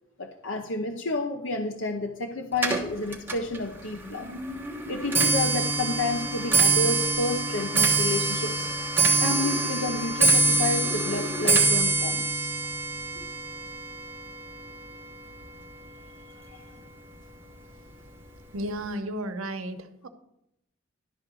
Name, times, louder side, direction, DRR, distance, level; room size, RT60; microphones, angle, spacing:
voice 1, 0.2-4.3 4.9-8.7 9.2-12.5, left 2 dB, 70° left, 4 dB, 0.8 m, -30 dB
Clock, 2.6-15.9 16.2-16.7 17.5-17.6 17.9-18.3 18.6-18.7, right 3 dB, 10° right, 1.2 m, -25 dB
voice 2, 18.5-20.1, right 1 dB, 90° right, 7 dB, 1.0 m, -33 dB
12.0 x 4.0 x 7.5 m, 0.80 s
head